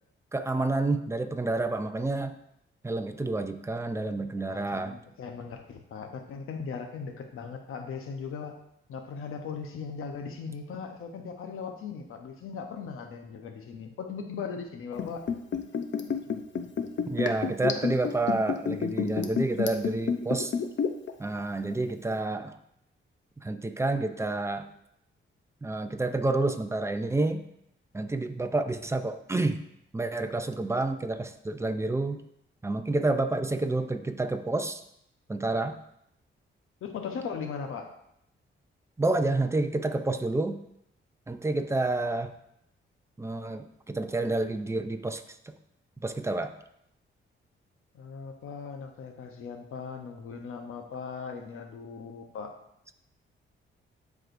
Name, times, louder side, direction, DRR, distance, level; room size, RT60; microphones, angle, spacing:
voice 1, 0.3-2.4 2.8-5.0 17.1-20.5 21.2-22.6 23.4-24.7 25.6-27.4 27.9-29.7 29.9-32.3 32.6-34.8 35.3-35.8 39.0-40.6 41.3-42.3 43.2-45.5 46.0-46.5, right 2 dB, 15° right, 7 dB, 0.6 m, -29 dB
voice 2, 4.3-8.5 8.9-15.2 36.8-37.9 47.9-52.5, left 5 dB, 90° left, 4 dB, 0.9 m, -38 dB
Liquid, 14.9-21.1 21.4-21.5, left 6 dB, 60° left, 0.8 m, -29 dB
12.0 x 4.8 x 2.6 m, 0.76 s
cardioid pair, 105°, 21 cm